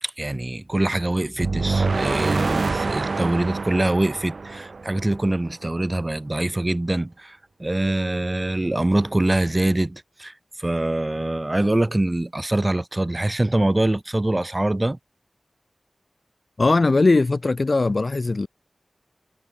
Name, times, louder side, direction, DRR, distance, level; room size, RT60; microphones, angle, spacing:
voice 1, 0.0-15.0, right 1 dB, 25° right, 1.8 m, -24 dB
sound 1, 1.4-5.5, right 4 dB, 75° right, 0.7 m, -26 dB
voice 2, 16.6-18.5, left 3 dB, 55° left, 3.2 m, -19 dB
wide cardioid pair, 75°, 0 cm